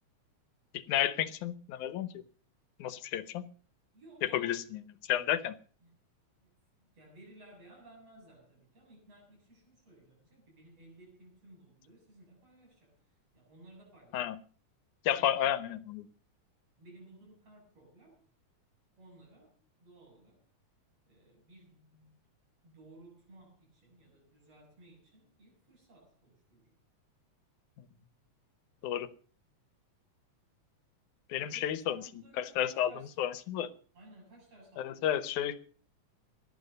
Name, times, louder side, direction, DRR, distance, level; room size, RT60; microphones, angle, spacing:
voice 1, 0.7-2.2 2.8-3.5 4.2-5.6 14.1-14.4 15.0-16.1 27.8-27.9 28.8-29.1 31.3-32.0 32.4-32.9 33.2-33.7 34.8-35.6, left 11 dB, 85° left, 15 dB, 2.5 m, -32 dB
voice 2, 3.9-4.6 5.8-6.0 6.4-6.5 6.8-13.0 13.3-14.2 15.2-15.6 16.8-18.2 19.0-19.5 19.8-20.4 21.1-22.2 22.6-26.7 31.5-33.1 33.9-35.2, right 2 dB, 55° right, 0 dB, 8.7 m, -57 dB
18.0 x 11.5 x 5.3 m, 0.43 s
omnidirectional pair, 3.4 m